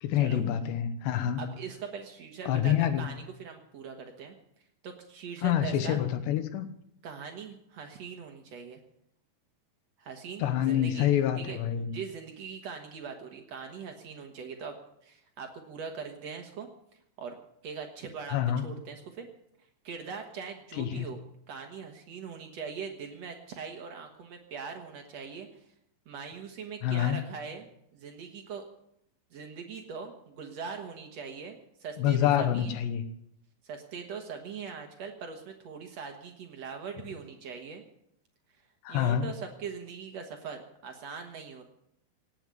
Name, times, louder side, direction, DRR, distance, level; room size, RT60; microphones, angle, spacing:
voice 1, 0.0-1.4 2.5-3.1 5.4-6.6 10.4-11.9 18.3-18.7 20.8-21.1 26.8-27.2 32.0-33.0 38.8-39.3, left 10 dB, 75° left, 11 dB, 3.1 m, -27 dB
voice 2, 1.3-4.3 4.8-6.0 7.0-8.8 10.0-11.1 11.3-11.6 11.9-14.8 15.0-16.7 17.2-17.4 17.6-18.4 18.6-19.3 19.8-21.2 21.5-25.6 26.0-27.7 27.9-28.6 29.3-32.7 33.6-37.8 38.9-41.6, right 6 dB, 70° right, 4 dB, 1.6 m, -41 dB
18.0 x 7.9 x 9.2 m, 0.75 s
omnidirectional pair, 5.2 m